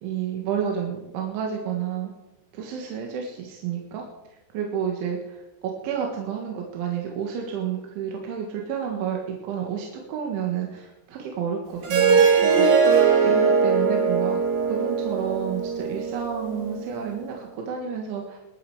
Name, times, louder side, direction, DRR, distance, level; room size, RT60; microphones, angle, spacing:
voice 1, 0.0-2.1 2.5-4.0 4.5-13.0 13.2-14.4 14.6-18.4, right 8 dB, 70° right, 0 dB, 4.0 m, -30 dB
Harp, 11.8-17.0, right 5 dB, 50° right, 3.4 m, -20 dB
22.0 x 9.9 x 5.0 m, 0.97 s
omnidirectional pair, 5.9 m